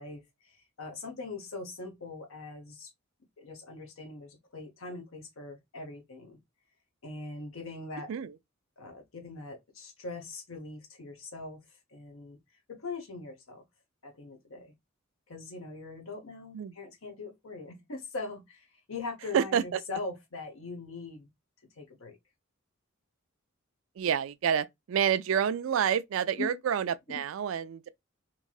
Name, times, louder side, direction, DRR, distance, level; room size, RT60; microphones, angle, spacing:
voice 1, 0.0-2.9 3.4-6.4 7.0-8.1 8.8-11.6 11.9-12.4 12.7-13.6 14.0-14.7 15.3-21.3 21.8-22.2 26.4-26.5 27.1-27.2, left 3 dB, 75° left, 0.9 m, -41 dB
voice 2, 19.3-19.8 24.0-27.9, right 8 dB, 70° right, 0.3 m, -28 dB
3.2 x 2.6 x 2.3 m
head